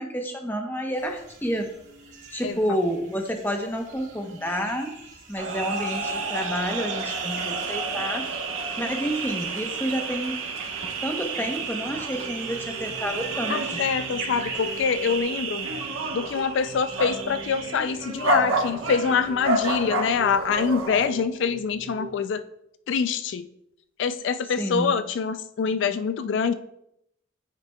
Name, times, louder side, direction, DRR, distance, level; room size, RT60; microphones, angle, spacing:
voice 1, 0.0-1.7 2.3-4.9 5.3-8.3 8.8-10.4 11.0-13.6 24.6-24.9, equal, 10° left, 3 dB, 0.8 m, -29 dB
sound 1, 0.9-15.2, right 4 dB, 65° right, 2.1 m, -43 dB
sound 2, 5.4-21.1, right 3 dB, 85° right, 1.1 m, -30 dB
sound 3, 11.4-22.4, right 2 dB, 35° right, 0.7 m, -42 dB
voice 2, 13.5-15.7 16.1-22.4 22.9-23.5 24.0-26.5, left 6 dB, 65° left, 11 dB, 0.3 m, -25 dB
9.5 x 7.3 x 2.2 m, 0.79 s
head